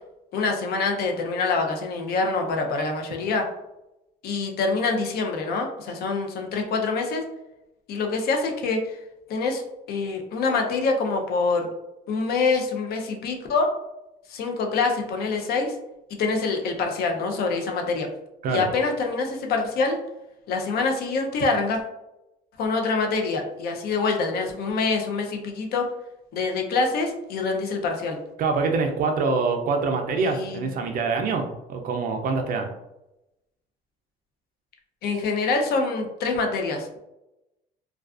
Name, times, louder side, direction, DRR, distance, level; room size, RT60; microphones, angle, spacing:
voice 1, 0.3-3.5 4.2-7.2 7.9-9.0 9.3-9.6 9.9-11.7 12.1-13.7 14.3-15.8 16.1-18.1 18.5-20.0 20.5-21.8 22.6-25.9 26.3-28.2 30.2-30.6 35.0-36.9, left 4 dB, 65° left, 3 dB, 0.5 m, -25 dB
voice 2, 28.4-32.7, right 4 dB, 60° right, 4 dB, 0.4 m, -25 dB
2.3 x 2.3 x 2.4 m, 0.91 s
cardioid pair, 110°, 17 cm